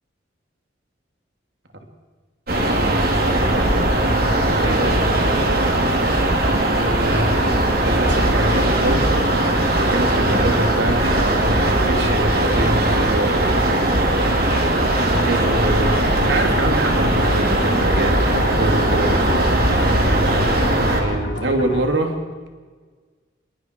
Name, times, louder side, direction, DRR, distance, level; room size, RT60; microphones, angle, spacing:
sound 1, 2.5-21.0, right 1 dB, 50° right, 3.2 m, -19 dB
voice 1, 2.8-4.0 4.6-5.2 6.7-9.1 9.8-14.1 15.0-18.2 18.5-19.5 20.9-22.2, right 1 dB, 70° right, 4 dB, 2.9 m, -25 dB
sound 2, 14.5-21.8, left 1 dB, 65° left, 4.3 m, -30 dB
27.0 x 21.5 x 4.7 m, 1.5 s
head